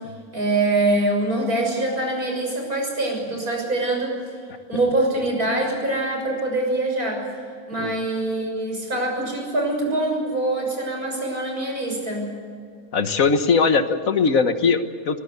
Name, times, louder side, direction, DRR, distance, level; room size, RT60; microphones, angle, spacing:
voice 1, 0.3-4.1 4.7-7.2 7.7-12.3, right 2 dB, 85° right, 1 dB, 7.2 m, -24 dB
voice 2, 12.9-15.2, left 5 dB, 65° left, 9 dB, 1.7 m, -20 dB
23.0 x 20.0 x 8.1 m, 2.3 s
omnidirectional pair, 1.5 m